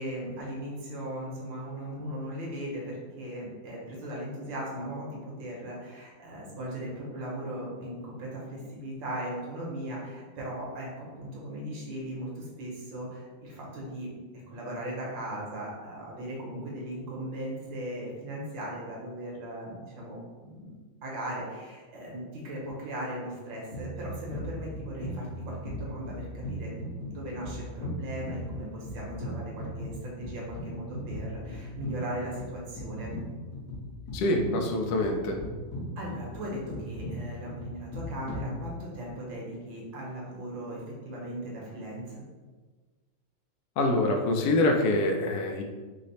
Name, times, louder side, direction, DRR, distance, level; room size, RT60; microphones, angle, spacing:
voice 1, 0.0-20.7 21.0-26.7 27.0-33.1 36.0-42.1, right 1 dB, 70° right, -4 dB, 1.7 m, -38 dB
sound 1, 23.7-39.1, equal, 55° left, 1.2 m, -38 dB
voice 2, 34.1-35.4 43.8-45.6, left 2 dB, 75° left, 2 dB, 0.9 m, -25 dB
3.9 x 2.0 x 4.0 m, 1.4 s
omnidirectional pair, 2.2 m